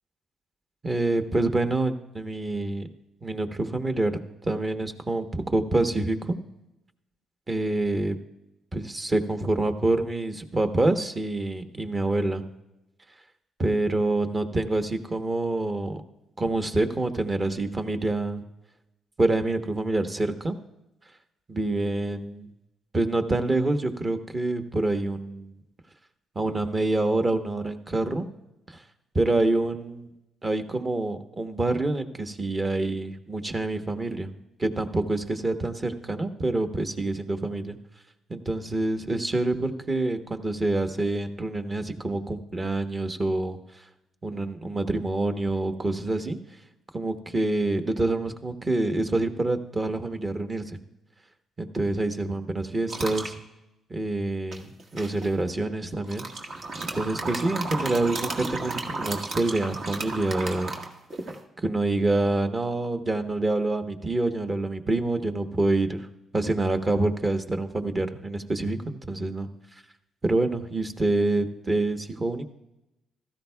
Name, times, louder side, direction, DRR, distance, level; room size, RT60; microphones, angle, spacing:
voice 1, 0.8-2.9 3.2-4.1 4.4-6.4 7.5-8.2 8.7-12.4 13.6-16.0 16.4-18.4 19.2-20.5 21.5-22.5 22.9-25.5 26.3-28.3 28.7-28.8 29.1-30.1 30.4-34.3 34.6-37.8 38.3-43.6 44.2-46.4 46.9-50.8 51.6-53.4 53.9-56.3 56.8-60.8 61.6-66.1 66.3-69.5 70.2-72.4, right 2 dB, 30° right, 7 dB, 1.1 m, -26 dB
sound 1, 52.9-53.3 54.5-55.3 56.0-61.4, right 2 dB, 55° right, 1.5 m, -33 dB
16.0 x 13.5 x 2.3 m, 0.93 s
cardioid pair, 90°, 0 cm